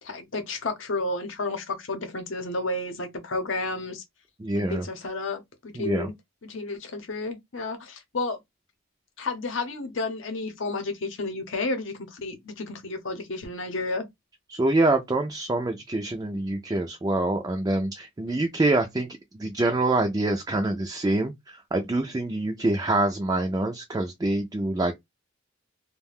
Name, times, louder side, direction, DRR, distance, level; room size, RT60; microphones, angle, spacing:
voice 1, 0.0-4.0 4.5-6.1 6.4-8.4 9.2-14.1 18.3-18.4, left 3 dB, 65° left, 0.8 m, -31 dB
voice 2, 4.4-4.9 5.7-6.1 14.5-19.1 19.3-25.0, right 2 dB, 20° right, 0.3 m, -25 dB
2.4 x 2.2 x 3.4 m
head